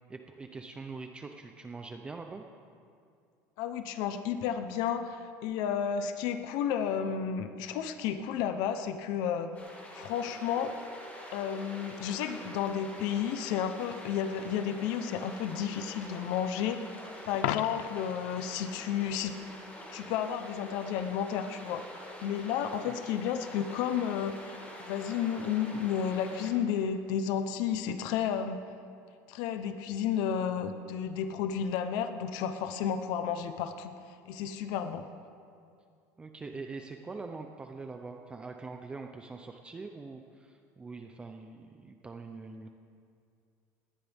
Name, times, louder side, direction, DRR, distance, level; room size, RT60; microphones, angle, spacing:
voice 1, 0.1-2.5 22.8-23.0 36.2-42.7, right 4 dB, 15° right, 4 dB, 0.7 m, -43 dB
voice 2, 3.6-9.5 9.9-10.7 11.3-16.8 17.3-19.3 19.9-21.9 22.2-28.6 29.3-33.9 34.3-35.0, left 8 dB, 65° left, 8 dB, 0.9 m, -32 dB
sound 1, 9.5-26.5, left 1 dB, 20° left, 2.7 m, -46 dB
Coin (dropping), 17.3-18.2 24.3-24.4, left 15 dB, 85° left, 0.5 m, -34 dB
20.0 x 18.0 x 3.6 m, 2.4 s
cardioid pair, 160°, 7 cm